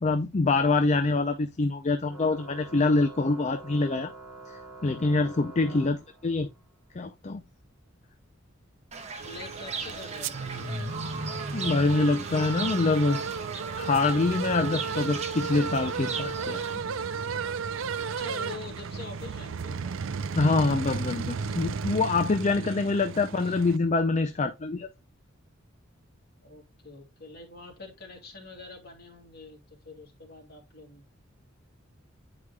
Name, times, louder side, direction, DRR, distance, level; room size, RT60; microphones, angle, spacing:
voice 1, 0.0-4.1 4.8-6.5 6.9-7.4 11.5-13.2 13.8-16.6 20.3-24.9, left 3 dB, 35° left, 0.5 m, -25 dB
voice 2, 0.8-1.4 5.7-5.9 9.2-10.8 18.1-20.0 23.4-23.5 26.4-31.1, left 3 dB, 50° left, 2.5 m, -45 dB
Organ, 2.1-6.6, right 3 dB, ahead, 4.0 m, -46 dB
Fowl / Bird, 8.9-16.8, right 4 dB, 35° right, 1.0 m, -37 dB
sound 1, 9.2-23.8, right 5 dB, 80° right, 0.5 m, -34 dB
9.8 x 4.9 x 2.3 m
head